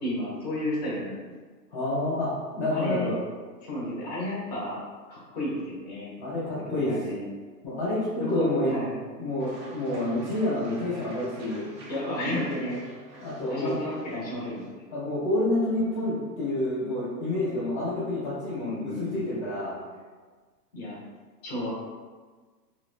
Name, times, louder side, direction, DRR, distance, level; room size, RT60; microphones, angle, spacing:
voice 1, 0.0-1.3 2.7-3.1 3.6-4.8 5.1-6.1 6.4-7.2 8.2-8.9 11.9-12.8 13.5-14.6 18.6-19.3 20.7-21.0 21.4-21.7, left 1 dB, 25° left, -6 dB, 0.7 m, -32 dB
voice 2, 1.7-3.2 6.2-6.9 7.6-8.7 9.2-11.7 13.2-13.8 14.9-19.8, left 1 dB, 10° right, -23 dB, 0.6 m, -28 dB
sound 1, 9.4-14.7, right 2 dB, 75° right, 0.7 m, -47 dB
3.2 x 2.1 x 2.4 m, 1.4 s
hypercardioid pair, 180°, 50 cm